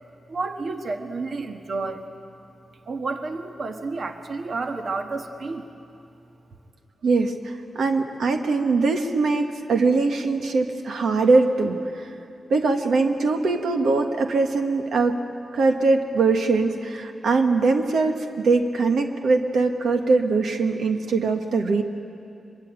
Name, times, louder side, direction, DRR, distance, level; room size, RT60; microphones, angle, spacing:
voice 1, 0.3-2.0 2.8-5.7, right 3 dB, 50° right, 5 dB, 1.5 m, -30 dB
voice 2, 7.0-12.1 12.5-15.2 15.5-21.8, right 3 dB, 85° right, 5 dB, 1.5 m, -22 dB
24.0 x 23.0 x 9.1 m, 2.6 s
wide cardioid pair, 130°, 0 cm